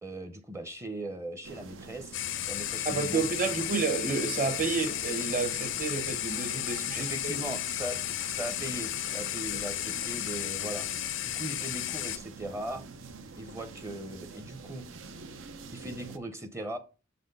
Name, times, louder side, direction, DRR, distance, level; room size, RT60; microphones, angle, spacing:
voice 1, 0.0-2.2 2.5-3.3 3.7-3.8 6.9-8.0 8.3-10.9 11.2-12.8 13.3-14.8 15.7-16.8, right 1 dB, 15° right, 0.7 m, -39 dB
sound 1, 1.4-16.2, right 4 dB, 80° right, 0.7 m, -46 dB
sound 2, 2.1-12.2, left 13 dB, 70° left, 0.5 m, -34 dB
voice 2, 2.8-7.1, right 4 dB, 45° right, 1.2 m, -30 dB
7.1 x 4.2 x 5.2 m
head